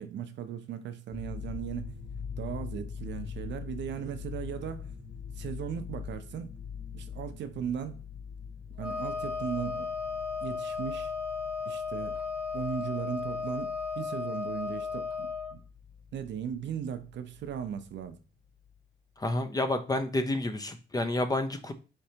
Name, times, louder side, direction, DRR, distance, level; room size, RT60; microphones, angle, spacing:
voice 1, 0.0-2.0 2.4-4.9 5.4-6.5 6.9-8.0 8.8-9.9 10.4-11.1 11.7-12.2 12.5-15.6 16.1-18.2, right 8 dB, 65° right, 0.6 m, -37 dB
sound 1, 1.1-18.2 18.5-18.8, left 7 dB, 60° left, 0.8 m, -44 dB
Wind instrument woodwind instrument, 8.8-15.5, left 5 dB, 5° right, 1.3 m, -35 dB
voice 2, 19.2-21.7, left 2 dB, 20° left, 0.6 m, -29 dB
4.4 x 3.2 x 2.8 m
cardioid pair, 90°, 20 cm